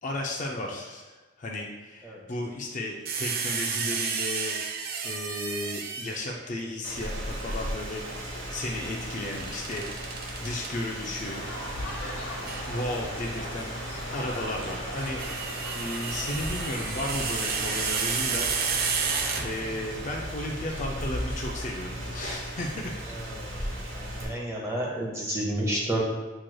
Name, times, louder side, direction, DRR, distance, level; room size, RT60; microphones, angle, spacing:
voice 1, 0.0-4.6 5.0-11.4 12.7-13.7 14.1-15.3 15.7-19.0 19.4-22.9 24.1-24.2, left 1 dB, 35° left, 0 dB, 0.4 m, -34 dB
sound 1, 3.1-6.4 9.2-10.7 12.5-12.7 14.8-19.9, right 5 dB, 45° right, 0.4 m, -31 dB
Rain, 6.8-24.2, equal, 65° right, 0.9 m, -36 dB
sound 2, 11.2-19.4, left 1 dB, 55° left, 0.9 m, -39 dB
voice 2, 23.9-26.1, right 1 dB, 15° right, -3 dB, 0.7 m, -30 dB
7.3 x 3.0 x 2.2 m, 1.2 s
head